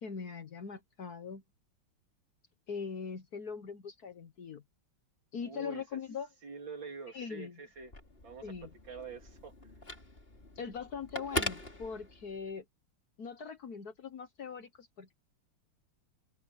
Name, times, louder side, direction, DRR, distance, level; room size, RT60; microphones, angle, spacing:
voice 1, 0.0-1.4 2.7-4.6 5.3-6.3 7.1-7.6 8.4-8.7 10.6-12.6 13.2-15.1, left 6 dB, 50° left, 1.5 m, -41 dB
voice 2, 5.4-6.0 6.4-7.9 8.2-9.8, right 5 dB, 60° right, 4.0 m, -46 dB
Telephone, 7.8-12.5, left 1 dB, 25° left, 3.7 m, -41 dB
omnidirectional pair, 2.3 m